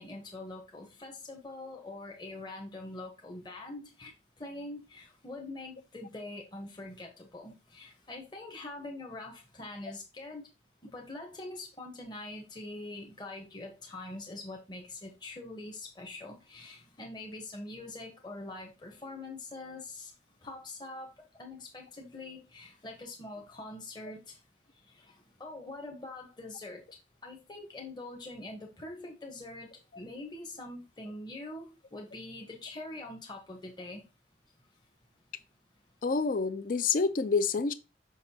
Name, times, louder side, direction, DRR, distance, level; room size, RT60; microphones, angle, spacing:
voice 1, 0.0-4.1 4.4-10.5 10.9-20.1 20.4-21.1 21.4-24.4 24.8-26.8 27.2-34.0, left 2 dB, 25° left, 1.0 m, -44 dB
voice 2, 36.0-37.7, left 4 dB, 50° left, 0.5 m, -28 dB
6.5 x 5.7 x 2.8 m
head